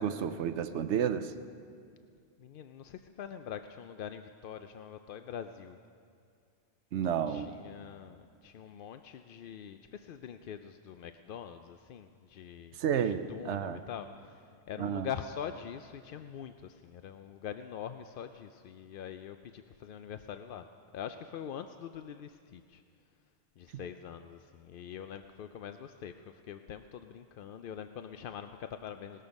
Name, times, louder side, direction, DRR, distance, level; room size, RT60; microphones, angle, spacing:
voice 1, 0.0-1.3 6.9-7.5 12.8-13.8 14.8-15.1, right 8 dB, 65° right, 11 dB, 0.9 m, -31 dB
voice 2, 2.4-5.8 7.3-12.8 13.0-20.7 20.9-22.8 23.6-29.2, left 8 dB, 65° left, 9 dB, 0.5 m, -44 dB
19.0 x 13.0 x 5.3 m, 2.2 s
omnidirectional pair, 1.3 m